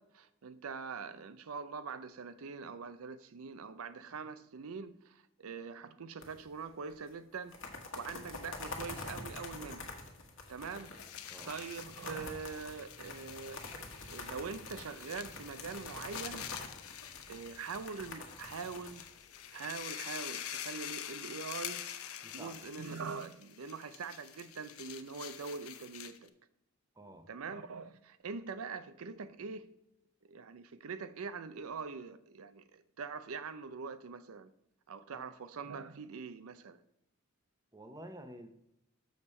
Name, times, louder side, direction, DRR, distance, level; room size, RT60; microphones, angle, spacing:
voice 1, 0.0-9.9 10.5-10.9 11.4-13.7 14.0-16.5 17.2-19.0 19.5-21.8 22.3-26.3 27.3-29.7 30.3-34.5 34.9-36.8, right 5 dB, 80° right, 0.5 m, -43 dB
sound 1, 6.2-6.7 6.9-7.0 7.4-19.8, left 3 dB, 60° left, 1.3 m, -46 dB
sound 2, 10.5-26.3, left 10 dB, 90° left, 0.6 m, -46 dB
voice 2, 22.2-22.6 27.0-27.3 35.1-35.2 37.7-38.5, right 1 dB, 15° right, 0.7 m, -50 dB
6.9 x 6.4 x 4.3 m
head